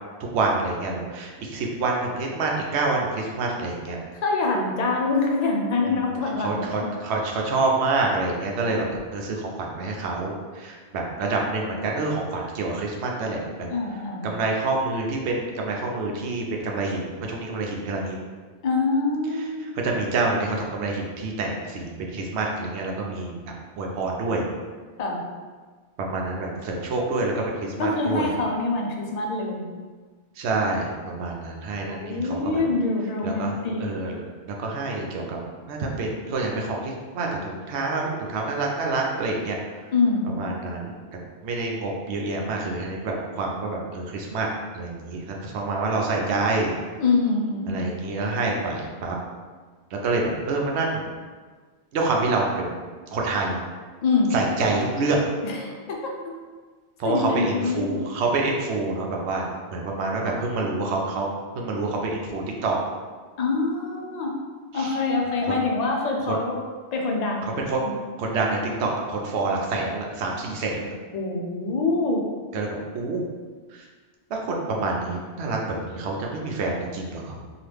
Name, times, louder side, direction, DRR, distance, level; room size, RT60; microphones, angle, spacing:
voice 1, 0.3-4.0 5.8-8.9 9.1-13.7 14.2-18.2 19.6-24.5 26.0-28.3 30.4-32.6 33.2-35.4 35.7-39.8 40.2-40.9 41.4-44.5 44.7-46.7 47.7-49.2 49.9-51.1 51.9-52.8 53.1-53.6 54.3-55.3 57.0-59.4 59.7-62.8 64.7-65.0 65.5-65.6 66.3-66.4 67.4-67.8 68.2-70.9 72.5-73.2 73.7-73.8 74.3-77.4, right 3 dB, 75° right, 0 dB, 0.8 m, -27 dB
voice 2, 4.2-6.9 13.7-14.3 18.6-19.8 25.0-25.2 27.8-29.7 31.8-33.8 39.9-40.4 47.0-47.9 54.0-54.4 55.4-56.4 57.0-58.0 63.4-64.3 64.7-66.6 66.9-67.6 67.8-67.9 71.1-72.3, left 3 dB, 60° left, 0 dB, 0.4 m, -25 dB
2.9 x 2.4 x 3.3 m, 1.4 s
omnidirectional pair, 1.1 m